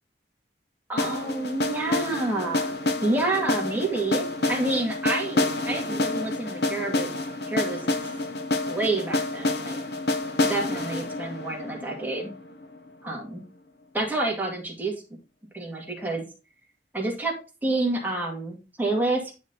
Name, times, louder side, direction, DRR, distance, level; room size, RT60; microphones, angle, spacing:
voice 1, 0.9-2.7 3.0-7.1 7.5-8.0 8.7-9.8 10.5-12.3 13.0-13.4 13.9-14.9 15.5-16.2 16.9-17.3 17.6-19.3, right 2 dB, 10° right, -1 dB, 2.1 m, -28 dB
sound 1, 1.0-12.9, left 2 dB, 65° left, 1.0 m, -28 dB
9.8 x 4.3 x 3.9 m, 0.31 s
head